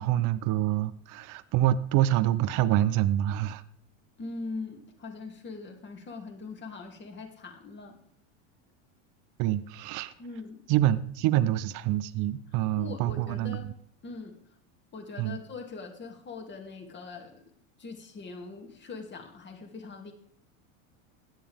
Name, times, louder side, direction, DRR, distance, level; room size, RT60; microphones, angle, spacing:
voice 1, 0.0-3.6 9.4-10.1 10.7-13.6 15.2-15.4, right 13 dB, 50° right, 0.7 m, -26 dB
voice 2, 4.2-7.9 10.2-10.6 12.8-13.7 14.0-14.4 14.9-17.4 17.8-20.1, left 4 dB, 25° left, 2.7 m, -41 dB
16.5 x 11.0 x 3.6 m
supercardioid pair, 115°, 40 cm